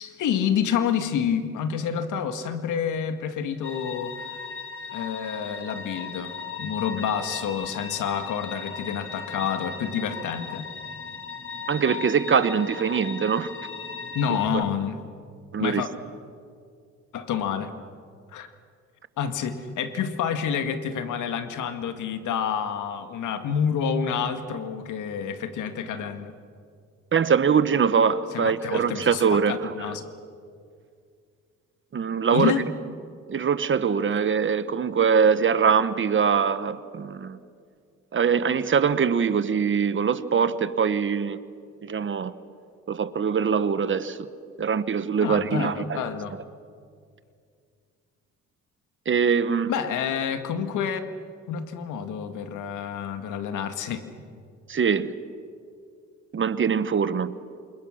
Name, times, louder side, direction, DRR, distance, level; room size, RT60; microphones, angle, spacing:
voice 1, 0.0-4.2 4.9-10.7 14.1-15.0 15.6-15.9 17.1-17.7 18.3-18.5 19.2-26.3 28.3-30.1 32.3-32.6 45.2-46.4 49.7-51.0 51.5-54.0, left 7 dB, 80° left, 1.9 m, -28 dB
sound 1, 3.6-14.5, left 6 dB, 40° left, 2.1 m, -37 dB
voice 2, 11.7-13.5 15.5-15.8 27.1-29.9 31.9-32.5 33.3-37.4 38.1-41.4 41.8-42.3 42.9-44.2 44.6-46.0 49.1-49.7 54.7-55.1 56.3-57.3, right 6 dB, 40° right, 1.2 m, -23 dB
27.5 x 27.5 x 6.5 m
cardioid pair, 90°, 30 cm